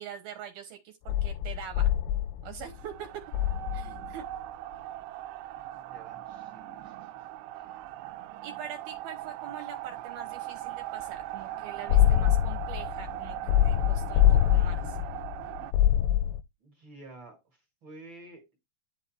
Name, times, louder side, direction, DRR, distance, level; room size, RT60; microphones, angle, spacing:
voice 1, 0.0-1.9 2.4-3.1 3.7-4.3 8.4-13.4 13.6-15.0, right 8 dB, 70° right, 2.4 m, -43 dB
sound 1, 1.1-2.9 3.3-4.2 11.9-16.4, left 11 dB, 85° left, 2.6 m, -24 dB
sound 2, 2.7-15.7, right 14 dB, 90° right, 2.5 m, -40 dB
voice 2, 5.7-7.3 7.5-7.8 16.6-18.6, right 2 dB, 40° right, 1.8 m, -51 dB
11.0 x 4.1 x 4.3 m
omnidirectional pair, 5.5 m